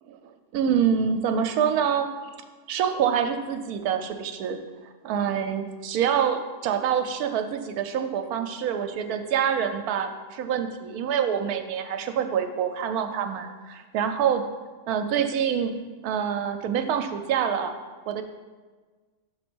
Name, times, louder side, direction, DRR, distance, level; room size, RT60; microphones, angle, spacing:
voice 1, 0.5-2.4 2.7-4.6 5.0-14.4 14.9-15.8 16.0-17.7 18.1-18.2, right 8 dB, 85° right, 7 dB, 1.1 m, -26 dB
6.0 x 4.0 x 6.1 m, 1.4 s
omnidirectional pair, 1.6 m